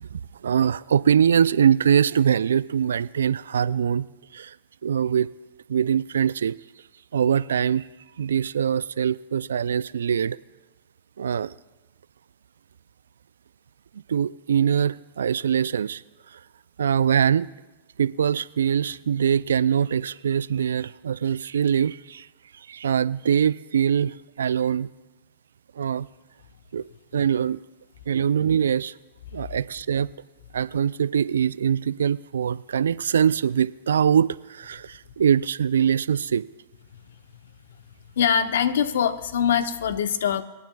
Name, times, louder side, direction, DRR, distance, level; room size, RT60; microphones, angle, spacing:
voice 1, 0.0-4.1 4.3-4.5 4.8-5.3 5.7-6.5 7.1-7.9 8.2-10.4 11.2-11.5 14.1-16.0 16.8-17.5 18.0-22.3 22.7-24.9 25.8-26.1 26.7-26.8 27.1-27.6 28.1-28.9 29.3-30.1 30.5-36.4, right 8 dB, 80° right, 0.3 m, -23 dB
voice 2, 38.2-40.4, left 8 dB, 75° left, 0.8 m, -23 dB
26.0 x 9.3 x 2.3 m
hypercardioid pair, 105°, 0 cm